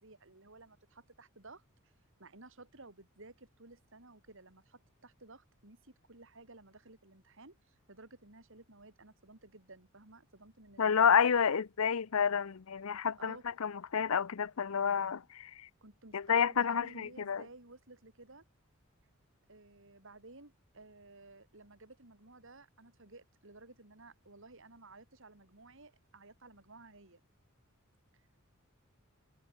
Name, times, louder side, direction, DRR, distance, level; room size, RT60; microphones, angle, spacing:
voice 1, 0.0-1.9 2.2-11.5 13.2-13.5 15.8-18.4 19.5-27.2 28.1-28.3, right 2 dB, 65° right, 4.1 m, -55 dB
voice 2, 10.8-15.7 16.1-17.4, left 7 dB, 85° left, 0.6 m, -30 dB
head